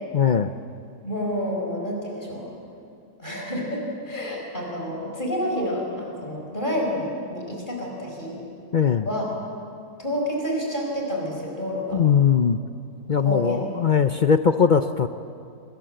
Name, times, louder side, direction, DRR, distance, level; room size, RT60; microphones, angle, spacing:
voice 1, 0.1-0.5 8.7-9.1 11.9-12.6 13.1-15.1, left 7 dB, 60° left, 9 dB, 0.5 m, -20 dB
voice 2, 1.0-2.6 3.2-8.4 9.0-9.2 10.0-12.0 13.2-13.6, equal, 30° left, -1 dB, 5.0 m, -29 dB
27.0 x 20.5 x 7.8 m, 2.5 s
omnidirectional pair, 1.6 m